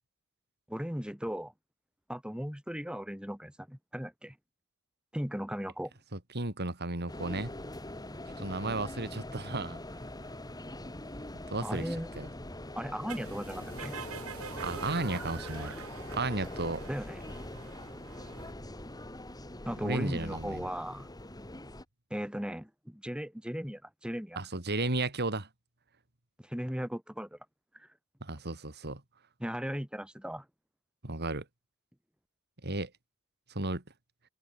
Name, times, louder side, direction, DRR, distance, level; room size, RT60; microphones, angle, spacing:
voice 1, 0.7-1.5 2.1-4.4 5.1-5.9 11.6-12.1 12.7-13.9 16.9-17.3 19.6-21.1 22.1-24.4 26.4-27.4 27.7-27.9 29.4-30.4, equal, 5° right, 3.4 m, -37 dB
voice 2, 6.1-7.5 8.4-9.8 11.5-11.9 12.2-12.3 14.6-15.7 16.1-16.9 19.8-20.7 24.4-25.5 28.2-29.0 31.0-31.4 32.6-32.9 33.5-33.8, right 2 dB, 50° right, 3.2 m, -34 dB
sound 1, 7.1-21.8, left 1 dB, 20° left, 2.7 m, -43 dB
sound 2, 13.1-18.5, right 5 dB, 85° right, 2.1 m, -45 dB
head